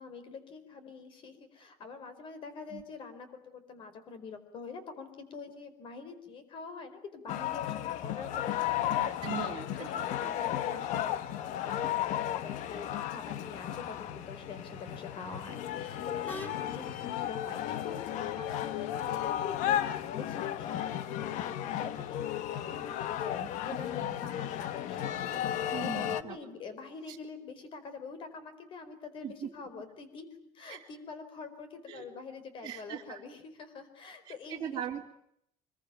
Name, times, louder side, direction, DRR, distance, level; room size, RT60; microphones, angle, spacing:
voice 1, 0.0-9.1 9.8-34.8, left 5 dB, 35° left, 11 dB, 4.7 m, -45 dB
sound 1, 7.3-26.2, left 11 dB, 60° left, 1.4 m, -34 dB
voice 2, 8.9-10.3 24.0-24.1 25.7-26.4 27.1-27.2 29.2-29.5 30.7-30.9 31.9-32.0 32.6-33.2 34.2-35.1, right 10 dB, 30° right, -2 dB, 2.6 m, -40 dB
sound 2, 13.4-19.3, left 2 dB, 15° left, 2.5 m, -50 dB
25.0 x 22.5 x 9.2 m, 0.73 s
cardioid pair, 170°, 14 cm